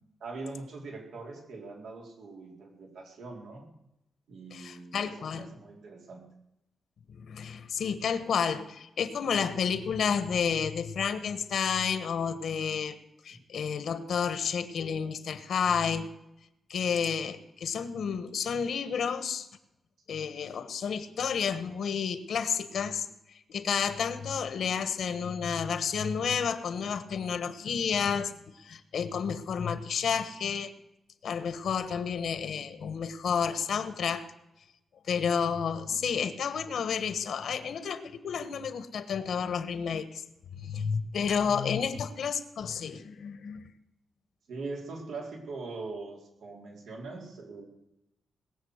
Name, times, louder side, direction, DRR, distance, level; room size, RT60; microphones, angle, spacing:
voice 1, 0.2-3.7 4.3-6.3 35.9-36.0 41.9-42.0 44.5-47.6, right 3 dB, 85° right, 1 dB, 4.0 m, -42 dB
voice 2, 4.5-5.5 7.1-13.0 13.2-16.1 16.7-19.5 20.1-23.1 23.5-30.7 31.2-34.3 35.0-40.2 40.5-43.7, left 6 dB, 65° left, 12 dB, 1.2 m, -31 dB
20.0 x 7.3 x 8.1 m, 0.87 s
wide cardioid pair, 140°, 0 cm